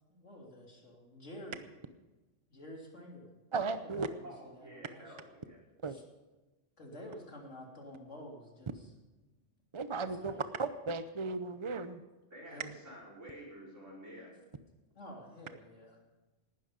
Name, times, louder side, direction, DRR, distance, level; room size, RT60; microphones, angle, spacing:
voice 1, 0.1-1.6 2.5-3.3 3.6-5.2 5.9-6.0 6.8-8.9 9.9-10.4 12.5-12.7 15.0-16.0, left 1 dB, 75° left, -1 dB, 3.6 m, -50 dB
voice 2, 3.5-4.1 5.8-6.0 9.7-10.3 10.6-12.0, right 4 dB, 35° right, 11 dB, 0.5 m, -35 dB
voice 3, 4.2-5.6 12.3-14.3, equal, 80° right, -4 dB, 5.5 m, -50 dB
18.5 x 12.5 x 5.2 m, 1.1 s
omnidirectional pair, 1.3 m